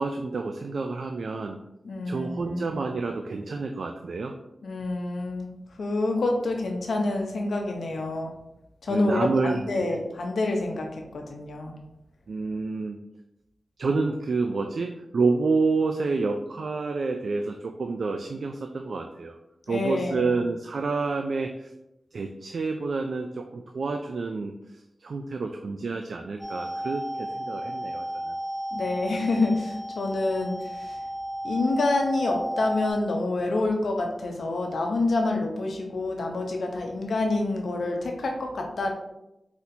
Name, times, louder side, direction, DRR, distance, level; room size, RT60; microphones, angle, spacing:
voice 1, 0.0-1.6 2.1-4.4 8.9-10.0 12.3-13.0 13.8-19.4 19.7-21.7 22.1-28.3, right 3 dB, 70° right, 5 dB, 0.3 m, -29 dB
voice 2, 1.8-2.8 4.6-5.5 5.8-8.3 8.8-11.7 19.7-20.4 28.7-31.0 31.4-38.9, left 2 dB, 85° left, 2 dB, 0.7 m, -27 dB
sound 1, 26.4-32.9, equal, 10° right, 0.7 m, -33 dB
4.3 x 4.1 x 2.7 m, 0.88 s
wide cardioid pair, 130°, 0 cm